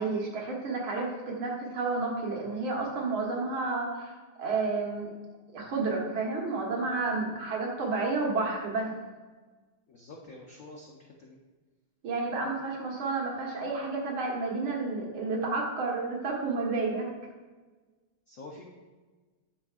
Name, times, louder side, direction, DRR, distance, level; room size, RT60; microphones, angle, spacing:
voice 1, 0.0-4.1 4.4-5.1 5.5-8.9 12.0-17.1, right 3 dB, 70° right, -2 dB, 2.2 m, -31 dB
voice 2, 9.9-11.4 18.3-18.7, left 2 dB, 80° left, -1 dB, 0.7 m, -47 dB
10.0 x 6.4 x 2.4 m, 1.3 s
omnidirectional pair, 2.4 m